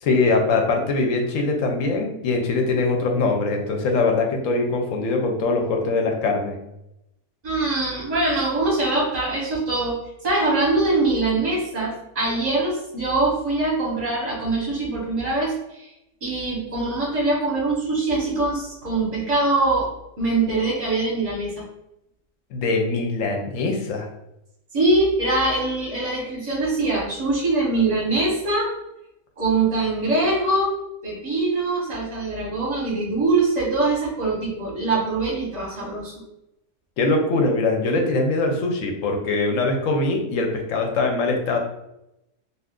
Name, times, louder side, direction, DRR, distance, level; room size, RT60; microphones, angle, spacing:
voice 1, 0.0-6.6 22.5-24.1 37.0-41.6, left 3 dB, 70° left, 2 dB, 0.9 m, -22 dB
voice 2, 7.4-10.0 10.2-15.9 16.2-19.9 20.2-21.6 24.7-28.7 29.4-30.8 31.0-36.1, right 2 dB, 35° right, -5 dB, 0.7 m, -23 dB
2.4 x 2.4 x 3.5 m, 0.86 s
omnidirectional pair, 1.6 m